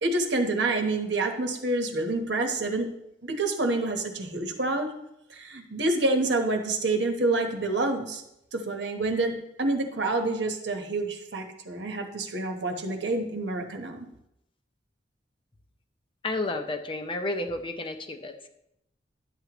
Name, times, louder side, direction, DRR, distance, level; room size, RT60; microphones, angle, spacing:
voice 1, 0.0-2.9 3.2-4.9 5.3-8.2 8.5-9.3 9.6-14.1, right 2 dB, 80° right, 4 dB, 1.1 m, -27 dB
voice 2, 16.2-18.5, left 2 dB, 30° left, 6 dB, 0.6 m, -31 dB
11.5 x 7.7 x 3.0 m, 0.82 s
head